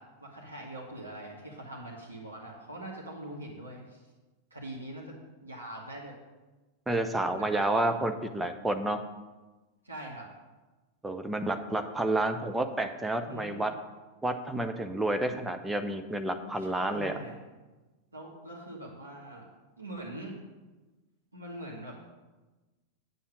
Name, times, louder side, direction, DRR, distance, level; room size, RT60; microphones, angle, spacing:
voice 1, 0.0-4.0 4.5-6.1 7.0-8.0 9.8-10.3 13.2-13.6 16.6-17.4 18.1-19.5 19.8-20.3 21.3-22.0, right 1 dB, 80° right, -3 dB, 2.0 m, -43 dB
voice 2, 6.9-9.0 11.0-13.7 14.2-17.2, right 1 dB, 5° right, 7 dB, 0.9 m, -30 dB
9.1 x 7.2 x 6.2 m, 1.2 s
figure-of-eight pair, 90°, 0 cm